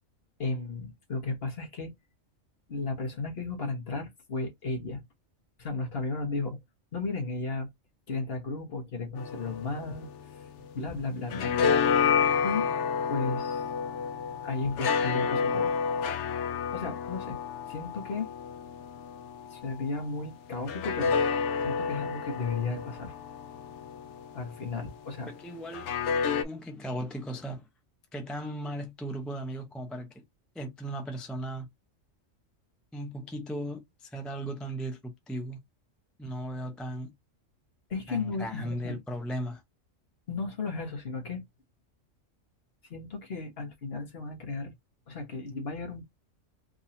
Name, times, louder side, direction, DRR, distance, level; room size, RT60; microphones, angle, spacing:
voice 1, 0.4-1.9 2.7-5.0 5.6-6.6 6.9-7.7 8.1-10.1 10.7-11.7 12.4-12.7 13.1-13.7 14.4-15.7 16.7-17.4 17.7-18.3 19.5-23.1 24.3-25.3 37.9-39.0 40.3-41.4 42.9-44.7 45.1-46.0, left 3 dB, 50° left, 1.5 m, -34 dB
sound 1, 9.2-10.8 11.1-19.8 20.7-24.7 25.7-26.4, left 6 dB, 70° left, 0.9 m, -30 dB
voice 2, 25.3-25.9 26.4-27.7 28.1-30.2 30.5-31.7 32.9-35.6 36.2-37.1 38.1-39.6, right 1 dB, ahead, 0.5 m, -37 dB
3.8 x 2.8 x 2.7 m
omnidirectional pair, 1.3 m